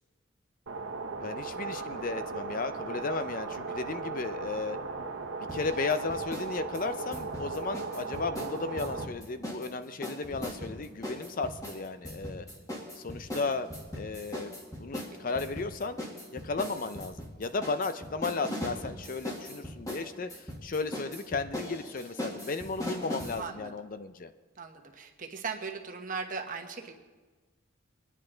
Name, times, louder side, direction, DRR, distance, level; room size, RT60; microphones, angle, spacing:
sound 1, 0.7-9.1, right 4 dB, 85° right, 0.9 m, -37 dB
voice 1, 1.2-4.8 5.5-12.5 13.0-16.0 16.3-24.3, left 3 dB, 45° left, 10 dB, 0.5 m, -34 dB
sound 2, 5.5-6.5 6.7-9.7 10.0-23.4, equal, 20° left, 1.7 m, -39 dB
voice 2, 15.1-15.4 23.4-23.7 24.6-26.9, right 5 dB, 45° right, 3 dB, 1.2 m, -39 dB
22.0 x 9.9 x 3.9 m, 1.3 s
head